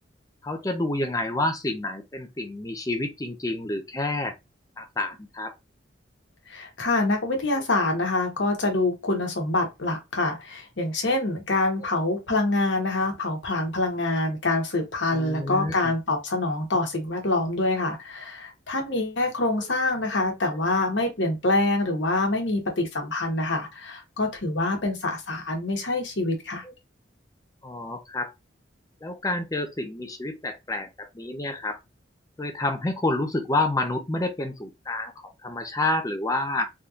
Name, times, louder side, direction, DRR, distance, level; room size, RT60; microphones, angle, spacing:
voice 1, 0.4-4.3 4.8-5.6 15.1-15.9 19.6-19.7 26.6-26.7 27.6-28.3 29.0-31.8 32.4-36.7, left 2 dB, 20° left, 0.5 m, -29 dB
voice 2, 6.5-26.6, left 2 dB, 75° left, 1.1 m, -26 dB
3.5 x 2.8 x 2.4 m
head